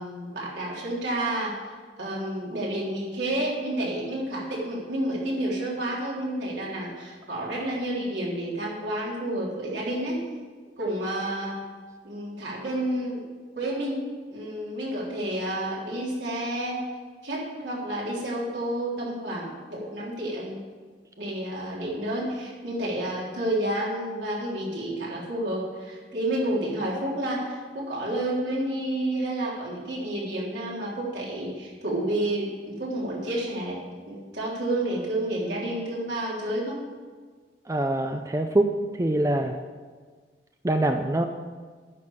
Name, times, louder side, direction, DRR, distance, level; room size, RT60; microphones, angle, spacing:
voice 1, 0.0-1.6 2.0-10.2 10.8-11.6 12.0-13.2 13.6-14.0 14.3-16.8 17.2-20.6 21.2-33.8 34.1-36.8, right 1 dB, 75° right, -5 dB, 3.6 m, -30 dB
voice 2, 37.7-38.7 39.0-39.6 40.6-41.3, right 1 dB, 20° right, 5 dB, 0.5 m, -24 dB
9.7 x 6.5 x 8.9 m, 1.5 s
head